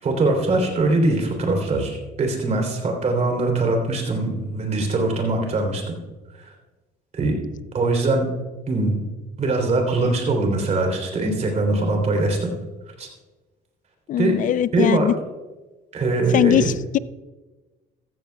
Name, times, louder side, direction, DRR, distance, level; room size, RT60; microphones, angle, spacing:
voice 1, 0.0-6.0 6.3-6.4 7.1-7.4 7.7-8.2 8.7-9.0 9.4-12.5 13.0-13.1 14.2-14.3 14.7-15.1 15.9-16.7, right 2 dB, 40° right, 3 dB, 3.4 m, -22 dB
voice 2, 14.1-15.1 16.3-17.0, left 11 dB, 50° left, 18 dB, 0.4 m, -20 dB
14.5 x 14.5 x 2.3 m, 1.2 s
cardioid pair, 110°, 17 cm